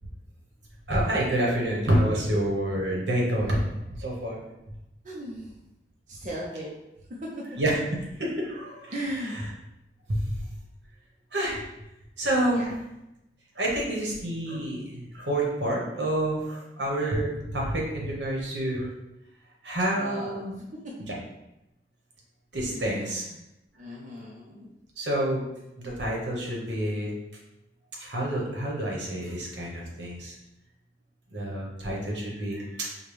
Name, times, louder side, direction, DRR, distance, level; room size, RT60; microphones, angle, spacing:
voice 1, 0.9-3.7 4.0-4.4 7.6-7.7 8.2-8.9 10.1-10.4 11.3-11.6 12.2-12.6 13.6-18.9 19.6-20.5 22.5-23.2 25.0-25.4 25.8-27.1 28.0-30.3 31.3-32.9, right 1 dB, 85° right, -2 dB, 1.2 m, -28 dB
voice 2, 5.0-5.6 6.1-6.7 7.1-7.3 8.9-9.4 12.5-12.7 19.9-20.5 20.8-20.9 22.7-23.3 23.7-24.7, equal, 45° right, -4 dB, 0.7 m, -37 dB
5.1 x 2.3 x 3.3 m, 0.90 s
head